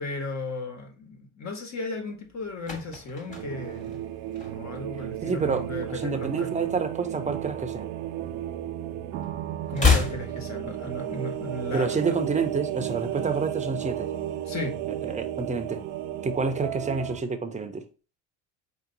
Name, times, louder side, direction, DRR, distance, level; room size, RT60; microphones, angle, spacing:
voice 1, 0.0-4.0 4.3-6.5 9.7-12.2 14.4-14.8, left 2 dB, 45° left, 1.5 m, -35 dB
sound 1, 2.3-4.9 5.2-5.5 5.8-7.3 7.5-8.9 9.2-11.3 11.5-11.6, left 4 dB, 20° left, 1.6 m, -29 dB
sound 2, 3.3-17.2, right 12 dB, 75° right, 0.6 m, -33 dB
voice 2, 5.2-7.9 11.7-14.1 15.0-15.8 16.2-17.9, right 4 dB, 20° right, 0.7 m, -29 dB
4.5 x 2.9 x 3.9 m
supercardioid pair, 90°, 38 cm